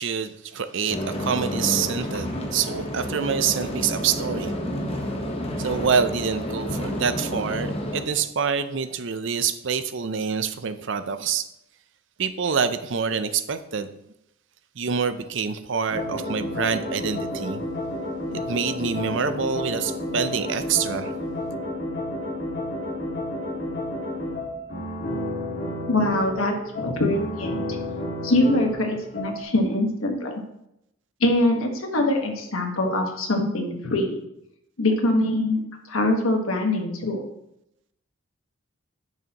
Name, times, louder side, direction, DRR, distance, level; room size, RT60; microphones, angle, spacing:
voice 1, 0.0-4.5 5.6-11.5 12.2-13.9 14.8-17.6 18.3-21.1, right 6 dB, 60° right, 11 dB, 0.5 m, -26 dB
sound 1, 0.9-8.0, equal, 30° left, 1.0 m, -30 dB
sound 2, 15.9-29.4, left 1 dB, 50° left, 1.8 m, -31 dB
voice 2, 25.9-27.8 28.2-30.3 31.2-34.2 34.8-37.2, left 1 dB, 80° left, 3 dB, 1.4 m, -23 dB
10.5 x 6.4 x 3.0 m, 0.82 s
head